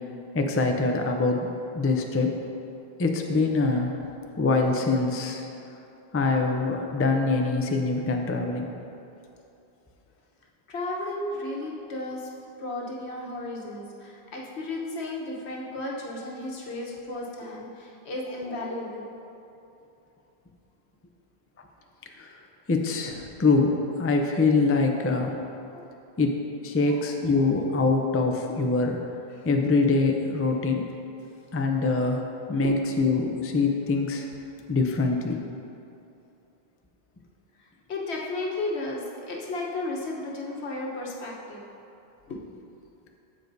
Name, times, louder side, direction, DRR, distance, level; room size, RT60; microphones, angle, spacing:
voice 1, 0.3-1.5 1.7-2.3 3.0-4.0 4.4-5.4 6.1-8.7 22.2-22.4 22.7-25.4 26.2-29.0 29.4-30.9 31.5-34.2 34.7-35.4, left 3 dB, 25° left, 3 dB, 0.3 m, -24 dB
voice 2, 10.7-19.2 25.7-25.8 26.9-27.0 27.4-27.5 29.3-29.5 32.6-32.7 37.6-41.6 42.3-42.4, left 2 dB, 85° left, -2 dB, 1.3 m, -34 dB
14.5 x 4.8 x 2.7 m, 2.9 s
omnidirectional pair, 1.1 m